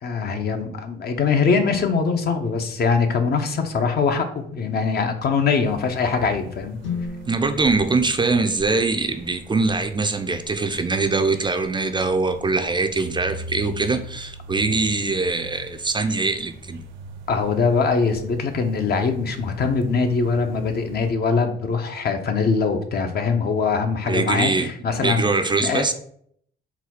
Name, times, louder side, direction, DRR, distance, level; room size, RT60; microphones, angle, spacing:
voice 1, 0.0-6.8 17.3-25.3 25.6-25.8, left 5 dB, 55° left, 6 dB, 0.7 m, -22 dB
sound 1, 5.6-21.1, right 1 dB, 75° right, 0.6 m, -41 dB
sound 2, 6.8-10.9, left 5 dB, 80° left, 1.1 m, -37 dB
voice 2, 7.3-16.8 24.1-24.7 25.0-25.9, right 3 dB, 25° right, 8 dB, 0.4 m, -22 dB
4.0 x 2.3 x 4.2 m, 0.64 s
cardioid pair, 90°, 20 cm